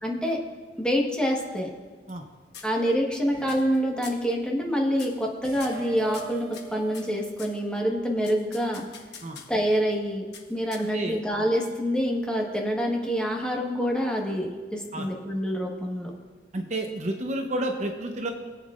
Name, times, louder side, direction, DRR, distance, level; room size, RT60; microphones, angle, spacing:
voice 1, 0.0-0.4 0.8-1.7 2.6-8.8 9.5-16.1, equal, 5° left, -1 dB, 1.3 m, -26 dB
sound 1, 1.6-2.2 2.5-3.1 3.5-3.8 4.0-4.3 4.9-5.3 5.6-7.6 8.2-9.6 10.3-11.2, left 6 dB, 60° left, 1.3 m, -45 dB
sound 2, 3.3-4.2 5.4-8.3, right 7 dB, 55° right, 1.1 m, -43 dB
voice 2, 10.8-11.2 14.9-15.1 16.5-18.3, right 1 dB, 40° right, 3 dB, 0.8 m, -30 dB
21.5 x 8.3 x 2.5 m, 1.5 s
head